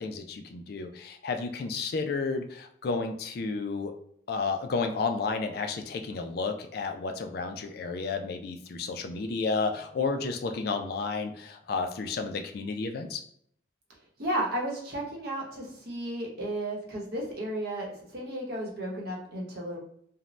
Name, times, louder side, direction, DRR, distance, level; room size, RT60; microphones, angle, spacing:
voice 1, 0.0-3.9 4.3-13.2, left 4 dB, 50° left, 6 dB, 0.3 m, -32 dB
voice 2, 14.2-17.9 18.1-19.8, right 1 dB, 55° right, -3 dB, 0.8 m, -33 dB
2.6 x 2.1 x 3.1 m, 0.68 s
head